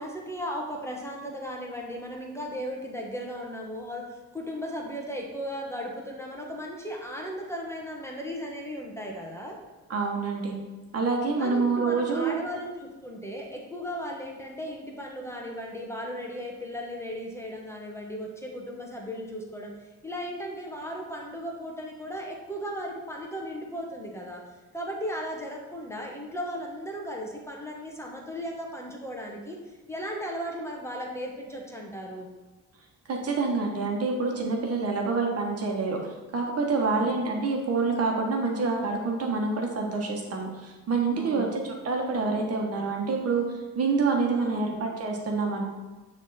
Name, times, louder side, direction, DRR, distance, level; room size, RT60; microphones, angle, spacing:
voice 1, 0.0-9.6 11.4-24.4 24.7-29.6 29.9-32.3 36.8-37.1 41.2-41.5 44.3-44.8, equal, 10° left, 0 dB, 1.3 m, -36 dB
voice 2, 9.9-10.5 10.9-12.3 33.1-36.0 36.3-45.6, right 4 dB, 55° right, 1 dB, 1.4 m, -27 dB
9.0 x 3.6 x 4.2 m, 1.2 s
cardioid pair, 90°, 30 cm